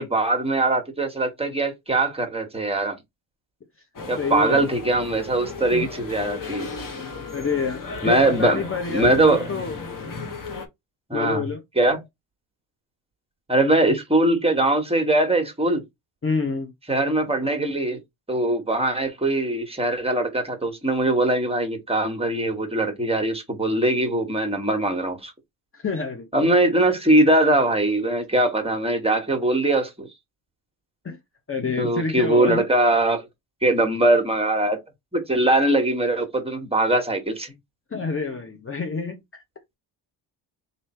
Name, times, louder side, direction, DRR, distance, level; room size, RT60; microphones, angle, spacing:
voice 1, 0.0-3.0 4.1-6.7 8.0-8.6 8.9-9.4 11.1-11.4 11.8-12.0 13.5-15.8 16.9-18.0 18.3-25.3 26.3-30.1 31.8-33.2 33.6-34.8 35.1-37.5, right 2 dB, 10° right, 1.3 m, -21 dB
sound 1, 3.9-10.7, left 4 dB, 45° left, 1.3 m, -35 dB
voice 2, 4.2-4.7 5.7-5.9 7.3-9.8 11.1-11.6 13.8-14.0 16.2-16.7 25.7-26.3 31.0-31.2 31.5-32.6 37.9-39.4, left 4 dB, 30° left, 0.8 m, -28 dB
3.3 x 2.7 x 4.3 m
cardioid pair, 75°, 46 cm